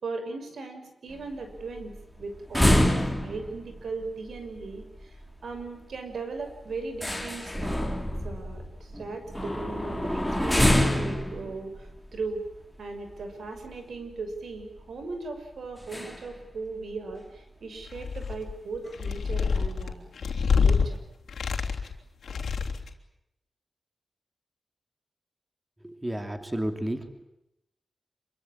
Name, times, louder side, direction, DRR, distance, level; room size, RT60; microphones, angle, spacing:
voice 1, 0.0-1.9 2.2-5.2 5.4-7.8 8.2-12.5 12.8-21.0, right 3 dB, 80° right, 6 dB, 6.1 m, -38 dB
sound 1, 1.1-13.7 14.2-14.3 14.6-14.8 15.8-16.4 16.6-16.7 17.1-17.2 17.8-17.9 18.2-18.5 18.9-19.6, left 1 dB, ahead, 4.1 m, -27 dB
sound 2, 17.9-18.5 18.9-20.8 21.3-21.9 22.2-22.9, left 5 dB, 90° left, 3.3 m, -26 dB
voice 2, 25.8-27.2, right 1 dB, 15° right, 7 dB, 2.8 m, -32 dB
26.5 x 24.0 x 8.9 m, 0.86 s
wide cardioid pair, 100°, 0 cm